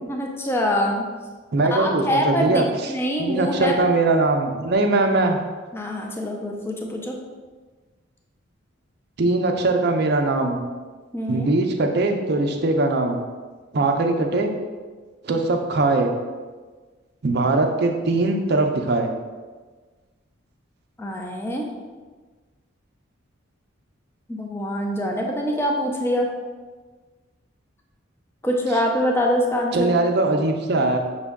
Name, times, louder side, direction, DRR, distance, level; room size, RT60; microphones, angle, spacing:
voice 1, 0.0-1.1 1.7-3.9 5.7-7.2 11.1-11.5 21.0-21.7 24.3-26.3 28.4-29.9, equal, 10° left, 0 dB, 0.4 m, -24 dB
voice 2, 1.5-2.7 3.2-5.4 9.2-10.6 11.3-13.2 13.7-14.5 15.2-16.1 17.2-19.1 29.7-31.0, right 2 dB, 55° right, 3 dB, 0.5 m, -21 dB
6.0 x 2.2 x 3.5 m, 1.4 s
head